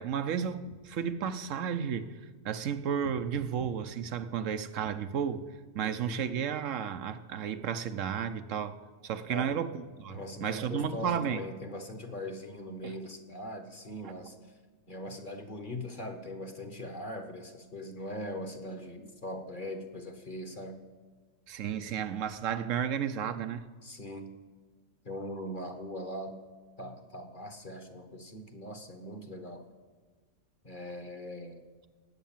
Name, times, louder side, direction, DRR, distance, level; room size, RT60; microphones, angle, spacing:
voice 1, 0.0-2.1 2.4-5.4 5.7-8.8 9.0-9.7 10.0-11.4 12.8-13.0 14.0-14.1 21.5-23.6, right 8 dB, 85° right, 1.1 m, -33 dB
voice 2, 5.8-6.2 9.3-9.6 10.1-14.3 14.9-20.8 23.8-24.4 25.0-26.4 26.8-29.6 30.6-31.6, left 1 dB, 40° left, 1.6 m, -41 dB
18.5 x 8.2 x 7.4 m
omnidirectional pair, 1.3 m